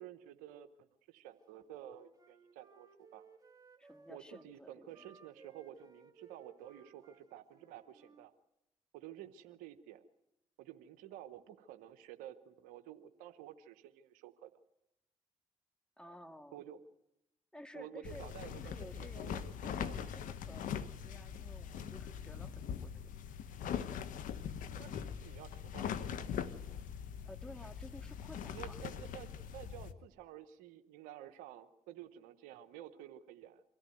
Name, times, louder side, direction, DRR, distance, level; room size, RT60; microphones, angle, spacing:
voice 1, 0.0-3.3 4.1-8.3 8.9-10.0 10.6-14.5 16.5-16.8 17.7-20.1 24.7-26.4 28.5-33.6, right 11 dB, 90° right, 10 dB, 0.9 m, -52 dB
Wind instrument woodwind instrument, 1.5-4.5 4.9-8.3, right 4 dB, 25° right, 2.9 m, -62 dB
voice 2, 3.8-5.0 16.0-16.6 17.5-23.1 27.3-28.8, left 1 dB, 5° left, 7 dB, 2.2 m, -54 dB
Cloth Flapping On A Clothesline Gently, 18.0-29.9, left 8 dB, 75° left, 1.1 m, -42 dB
24.0 x 14.0 x 9.2 m, 0.85 s
supercardioid pair, 50°, 14 cm